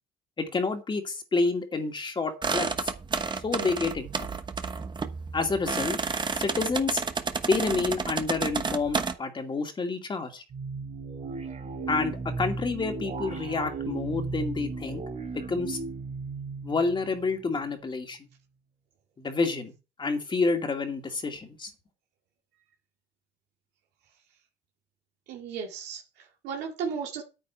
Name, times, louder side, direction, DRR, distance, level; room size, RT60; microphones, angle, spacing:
voice 1, 0.4-2.9 3.3-4.3 5.3-6.0 6.3-7.0 7.5-10.4 11.9-15.0 15.5-15.8 16.6-18.2 19.2-19.7 20.0-21.7, left 4 dB, 30° left, 2.4 m, -29 dB
sound 1, 2.4-9.1, right 5 dB, 25° right, 1.1 m, -31 dB
sound 2, 10.5-17.7, right 3 dB, 45° right, 4.0 m, -35 dB
voice 2, 25.3-27.2, right 6 dB, 85° right, 2.1 m, -35 dB
9.4 x 9.1 x 4.5 m
cardioid pair, 110°, 17 cm